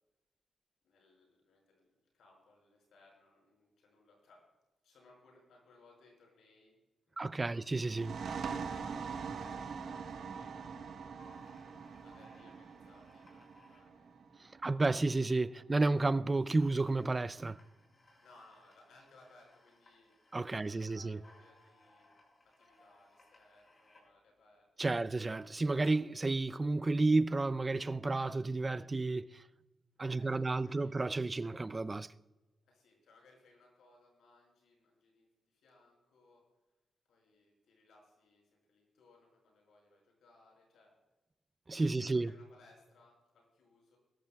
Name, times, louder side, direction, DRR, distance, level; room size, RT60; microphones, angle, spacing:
voice 1, 0.8-4.4 4.8-6.8 7.1-7.6 8.3-11.6 12.0-14.2 18.2-22.1 22.4-25.1 30.0-30.9 32.6-36.4 37.1-40.9 41.8-44.0, left 2 dB, 85° left, 5.7 m, -64 dB
voice 2, 7.2-8.1 14.6-17.6 20.3-21.2 24.8-29.4 30.0-32.1 41.7-42.3, right 3 dB, 30° right, 0.5 m, -31 dB
sound 1, 7.8-15.2, right 5 dB, 75° right, 1.2 m, -43 dB
sound 2, 11.2-14.9 15.7-15.8 16.0-16.1 16.3-26.3, left 2 dB, 40° left, 5.6 m, -65 dB
21.5 x 14.0 x 2.3 m
cardioid pair, 65°, 0 cm